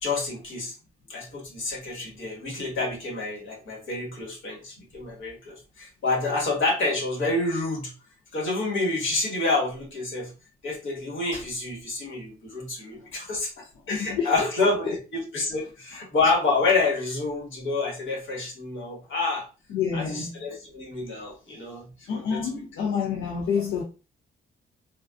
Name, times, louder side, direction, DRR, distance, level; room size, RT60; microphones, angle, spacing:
voice 1, 0.0-0.7 1.1-7.9 8.3-10.3 10.6-19.5 19.9-22.4, left 3 dB, 70° left, 1.2 m, -28 dB
voice 2, 13.9-14.3 14.8-14.9 19.7-20.3 22.1-23.8, left 6 dB, 85° left, 0.5 m, -28 dB
2.4 x 2.3 x 2.3 m
cardioid pair, 110°, 21 cm